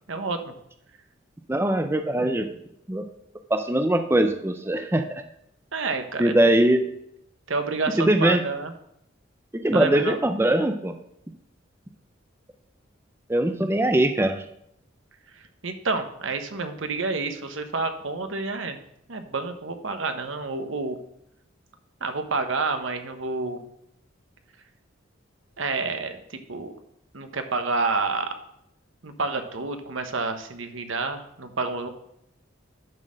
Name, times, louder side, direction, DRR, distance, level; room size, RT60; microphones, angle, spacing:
voice 1, 0.1-0.5 5.7-6.3 7.5-8.7 9.7-10.2 15.6-18.8 19.1-21.0 22.0-23.6 25.6-26.7 27.1-28.3 29.0-31.9, right 3 dB, 75° right, 7 dB, 1.0 m, -29 dB
voice 2, 1.5-2.6 2.9-3.1 3.5-5.2 6.2-6.9 8.0-8.4 9.5-11.0 13.3-14.4, right 1 dB, 10° right, 7 dB, 0.5 m, -22 dB
10.5 x 4.3 x 6.3 m, 0.77 s
head